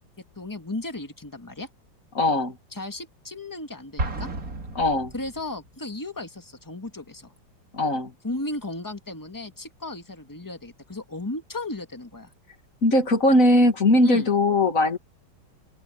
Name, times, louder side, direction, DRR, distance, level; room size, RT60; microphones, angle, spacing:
voice 1, 0.3-1.7 2.7-4.3 5.1-7.3 8.2-12.3 14.0-14.3, left 2 dB, 10° left, 1.7 m, -35 dB
voice 2, 2.1-2.6 4.8-5.1 7.7-8.1 12.8-15.0, left 1 dB, 45° left, 2.6 m, -20 dB
Explosion, 4.0-5.7, right 2 dB, 45° right, 3.0 m, -32 dB
omnidirectional pair, 2.0 m